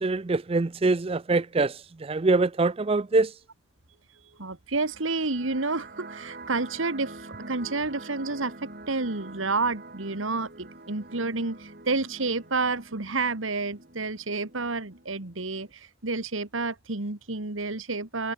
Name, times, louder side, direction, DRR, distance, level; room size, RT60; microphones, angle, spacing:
voice 1, 0.0-3.3, right 3 dB, 30° right, 0.4 m, -24 dB
voice 2, 4.4-18.3, right 3 dB, 80° right, 2.0 m, -30 dB
sound 1, 4.7-15.7, right 2 dB, 45° right, 4.4 m, -46 dB
head